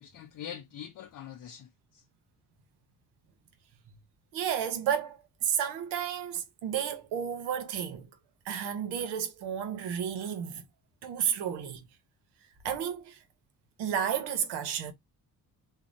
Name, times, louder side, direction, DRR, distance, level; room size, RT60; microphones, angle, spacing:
voice 1, 0.0-2.0, left 9 dB, 50° left, 0.5 m, -44 dB
voice 2, 4.3-8.1 8.4-10.6 11.0-11.8 12.6-13.2 13.8-14.9, right 8 dB, 85° right, 0.8 m, -32 dB
3.0 x 2.2 x 2.5 m
supercardioid pair, 55°, 39 cm